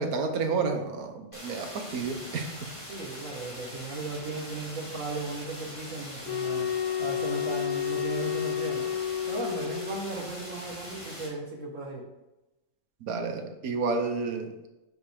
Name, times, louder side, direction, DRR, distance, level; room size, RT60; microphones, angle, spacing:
voice 1, 0.0-2.7 13.1-14.7, right 4 dB, 85° right, 5 dB, 1.4 m, -30 dB
sound 1, 1.3-11.3, equal, 20° left, 2.1 m, -43 dB
voice 2, 2.9-6.7 7.0-8.9 9.3-12.1, right 2 dB, 60° right, 1 dB, 1.8 m, -36 dB
sound 2, 6.2-10.2, left 9 dB, 80° left, 1.2 m, -31 dB
10.5 x 5.3 x 3.5 m, 0.99 s
omnidirectional pair, 1.5 m